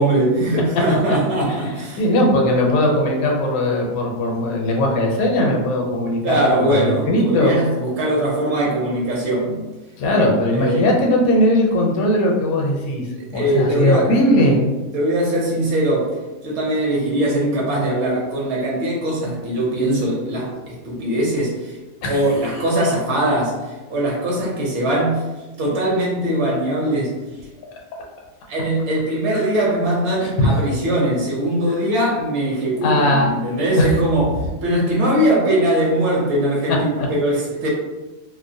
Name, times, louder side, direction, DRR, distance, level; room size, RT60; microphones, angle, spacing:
voice 1, 0.0-2.0 6.2-9.6 10.1-10.3 10.5-10.9 13.2-14.1 14.9-16.1 16.4-21.7 22.1-23.6 23.9-25.3 25.6-27.2 28.5-37.7, right 1 dB, 60° right, -4 dB, 0.8 m, -21 dB
voice 2, 2.0-7.5 10.0-13.0 13.3-14.7 22.0-22.3 30.2-30.6 32.8-33.3 33.8-33.9, left 1 dB, 80° left, -1 dB, 1.0 m, -19 dB
2.5 x 2.0 x 2.6 m, 1.2 s
omnidirectional pair, 1.5 m